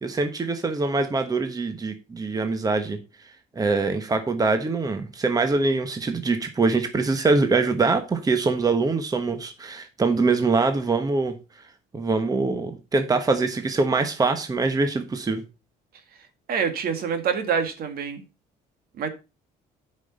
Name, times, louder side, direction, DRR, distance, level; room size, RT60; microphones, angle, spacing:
voice 1, 0.0-3.0 3.5-11.3 11.9-15.4, right 3 dB, 20° right, 1.2 m, -23 dB
voice 2, 16.5-18.2 19.0-19.1, right 6 dB, 60° right, 1.9 m, -26 dB
8.2 x 5.4 x 5.3 m
cardioid pair, 110°, 17 cm